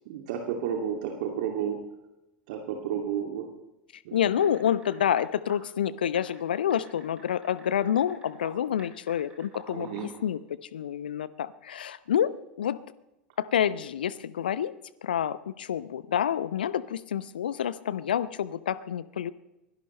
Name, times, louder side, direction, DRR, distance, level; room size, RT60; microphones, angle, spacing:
voice 1, 0.1-1.8 2.5-3.5 4.0-4.5 9.7-10.1, right 8 dB, 55° right, 2 dB, 2.4 m, -32 dB
voice 2, 4.1-10.4 10.7-12.8 13.4-14.7 15.0-19.3, left 9 dB, 65° left, 17 dB, 0.8 m, -28 dB
sound 1, 4.4-5.2 5.5-5.6 6.1-8.5 8.8-10.2, right 3 dB, 15° right, 7.9 m, -49 dB
24.0 x 17.0 x 3.2 m, 0.95 s
figure-of-eight pair, 85°, 5 cm